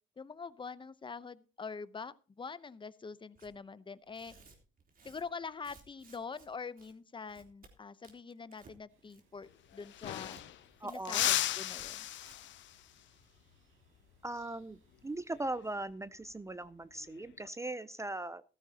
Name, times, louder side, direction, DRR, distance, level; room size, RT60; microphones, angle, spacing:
voice 1, 0.2-4.3 5.0-10.4 10.8-12.1, left 5 dB, 25° left, 15 dB, 0.8 m, -45 dB
Tearing, 3.4-3.5 4.1-6.5 6.8-6.9 7.3-7.7 8.0-8.8 9.1-9.4 9.7-10.4 10.9-11.0 11.3-11.4 11.7-11.9 12.2-12.4, right 4 dB, 45° right, 3.5 m, -59 dB
sound 1, 8.9-15.5, right 4 dB, 85° right, 5.7 m, -70 dB
sound 2, 9.4-9.5 9.7-10.7 11.1-12.8 15.3-15.6 17.0-17.5, left 13 dB, 70° left, 0.5 m, -35 dB
voice 2, 10.8-11.3 14.2-18.4, right 2 dB, 15° right, 16 dB, 0.5 m, -39 dB
15.0 x 13.5 x 2.9 m, 0.34 s
cardioid pair, 90°, 20 cm